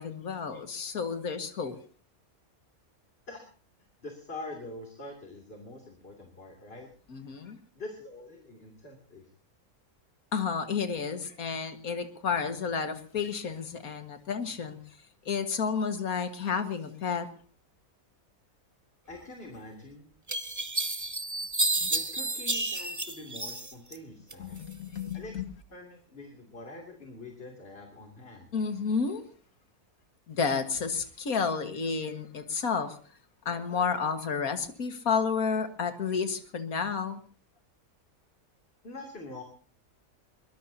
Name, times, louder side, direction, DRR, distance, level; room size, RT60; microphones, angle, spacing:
voice 1, 0.0-1.8 7.1-7.6 10.3-14.8 15.3-17.3 21.8-21.9 24.4-25.5 28.5-29.2 30.3-33.0 33.5-37.2, left 5 dB, 80° left, 8 dB, 2.1 m, -31 dB
voice 2, 4.0-6.9 7.2-9.3 19.1-20.1 21.9-24.6 25.1-25.3 25.7-28.5 38.8-39.4, left 2 dB, 40° left, 1 dB, 3.1 m, -45 dB
sound 1, 19.6-19.7 20.3-24.0 24.3-25.1, right 2 dB, 15° right, 0.8 m, -31 dB
22.5 x 21.5 x 2.8 m, 0.41 s
omnidirectional pair, 1.5 m